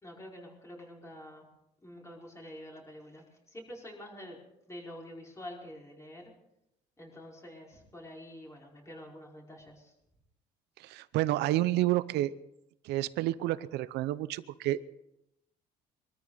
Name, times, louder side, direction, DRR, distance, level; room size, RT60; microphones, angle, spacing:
voice 1, 0.0-1.5 1.8-4.4 4.7-6.3 7.0-9.9, left 1 dB, 15° left, -2 dB, 5.0 m, -47 dB
voice 2, 10.8-12.3 12.8-14.8, right 15 dB, 85° right, 16 dB, 0.7 m, -29 dB
24.0 x 14.0 x 4.0 m, 0.83 s
cardioid pair, 110°, 17 cm